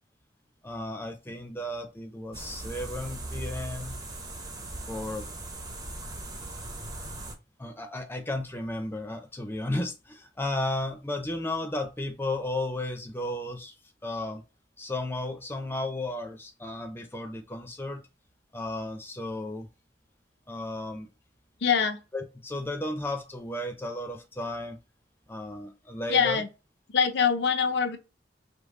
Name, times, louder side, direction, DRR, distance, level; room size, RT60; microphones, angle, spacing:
voice 1, 0.6-4.0 4.9-5.3 7.6-13.7 14.0-14.4 14.8-18.0 18.5-19.7 20.5-21.1 22.1-24.8 25.3-26.4, left 1 dB, 10° left, 0.6 m, -34 dB
sound 1, 2.3-7.3, right 2 dB, 20° right, 0.8 m, -39 dB
voice 2, 21.6-22.0 26.1-26.5 26.9-28.0, left 6 dB, 65° left, 0.6 m, -24 dB
5.2 x 2.1 x 3.7 m
head